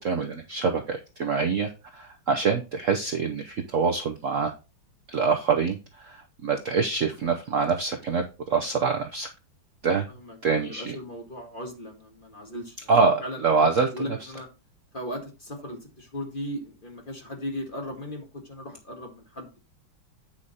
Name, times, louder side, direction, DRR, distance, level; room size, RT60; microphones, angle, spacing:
voice 1, 0.0-4.5 5.1-9.3 9.8-10.1 10.4-11.0 12.9-13.9, right 5 dB, 55° right, 4 dB, 0.9 m, -25 dB
voice 2, 10.1-14.5 14.9-19.6, equal, 30° left, 2 dB, 1.7 m, -37 dB
8.9 x 5.0 x 4.1 m, 0.30 s
omnidirectional pair, 2.1 m